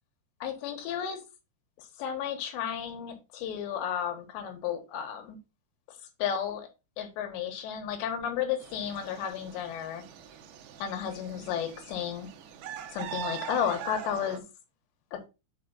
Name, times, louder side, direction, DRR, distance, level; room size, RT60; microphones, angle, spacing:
voice 1, 0.4-1.2 1.8-5.4 6.2-6.7 7.0-10.0 10.8-12.3 12.9-14.4 15.1-15.3, left 8 dB, 75° left, 6 dB, 3.5 m, -33 dB
sound 1, 8.6-14.4, right 10 dB, 70° right, 2.5 m, -42 dB
6.6 x 5.4 x 3.9 m, 0.27 s
omnidirectional pair, 5.1 m